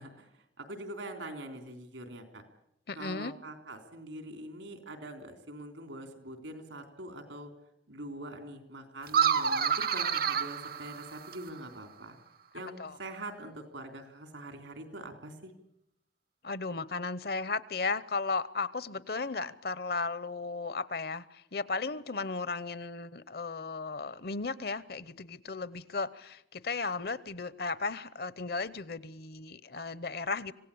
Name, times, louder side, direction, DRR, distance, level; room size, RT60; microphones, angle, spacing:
voice 1, 0.0-2.4 2.9-7.5 7.9-12.2 12.5-15.5, right 1 dB, 85° right, 3.7 m, -44 dB
voice 2, 2.9-3.3 12.8-13.0 16.4-30.5, left 4 dB, 55° left, 0.8 m, -35 dB
sound 1, 9.1-11.6, right 7 dB, 50° right, 0.8 m, -29 dB
26.0 x 17.0 x 8.6 m
head